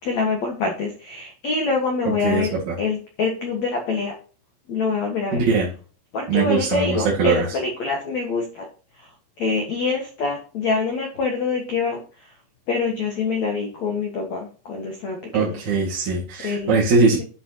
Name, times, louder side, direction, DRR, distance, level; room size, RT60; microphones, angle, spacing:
voice 1, 0.0-4.1 4.7-5.4 6.1-8.6 9.0-9.1 9.4-12.0 12.7-15.6 16.4-16.9, left 4 dB, 65° left, 2 dB, 1.7 m, -25 dB
voice 2, 2.2-2.7 5.3-5.7 6.3-7.6 15.3-17.2, right 4 dB, 50° right, -4 dB, 2.7 m, -21 dB
11.0 x 6.3 x 3.0 m, 0.37 s
omnidirectional pair, 5.9 m